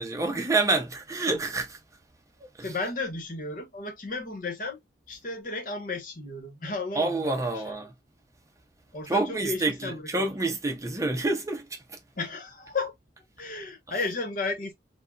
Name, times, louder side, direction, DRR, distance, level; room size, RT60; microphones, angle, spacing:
voice 1, 0.0-1.8 2.6-2.7 6.9-7.9 9.1-12.0, right 2 dB, 20° right, 0.7 m, -28 dB
voice 2, 2.6-4.8 5.1-7.7 8.9-10.3 12.2-12.9 13.4-14.7, left 3 dB, 50° left, 1.1 m, -34 dB
3.4 x 2.3 x 2.3 m
head